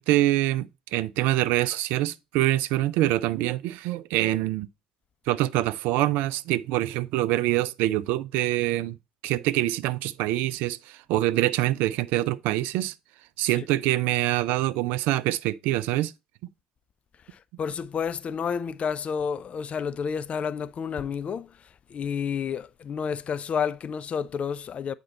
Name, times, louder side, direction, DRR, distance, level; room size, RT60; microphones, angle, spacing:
voice 1, 0.0-4.7 5.3-9.0 9.2-12.9 13.4-16.1, right 15 dB, 55° right, 0.4 m, -25 dB
voice 2, 17.3-24.9, left 7 dB, 35° left, 0.5 m, -30 dB
8.5 x 4.4 x 4.1 m
figure-of-eight pair, 55°, 4 cm